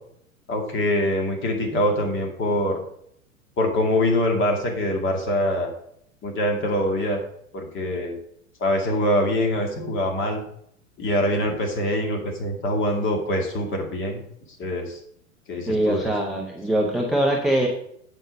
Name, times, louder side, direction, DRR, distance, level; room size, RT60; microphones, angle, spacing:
voice 1, 0.5-2.8 3.6-5.7 6.2-7.2 7.5-8.2 8.6-10.4 11.0-14.2 14.6-15.0 15.5-16.1, left 1 dB, 30° left, 2 dB, 2.2 m, -24 dB
voice 2, 15.7-17.7, right 1 dB, ahead, -1 dB, 0.3 m, -22 dB
8.0 x 5.5 x 5.3 m, 0.69 s
figure-of-eight pair, 95°, 41 cm